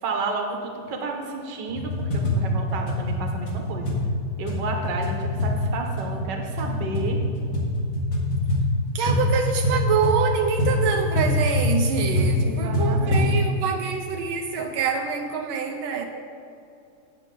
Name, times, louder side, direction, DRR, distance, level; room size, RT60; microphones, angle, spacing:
voice 1, 0.0-4.0 4.4-7.2 12.4-13.3, right 3 dB, 60° right, 2 dB, 1.7 m, -31 dB
sound 1, 1.7-13.4, left 1 dB, 65° left, 2.6 m, -24 dB
voice 2, 8.9-16.0, right 6 dB, 85° right, 3 dB, 1.5 m, -26 dB
17.0 x 5.9 x 3.8 m, 2.6 s
omnidirectional pair, 2.2 m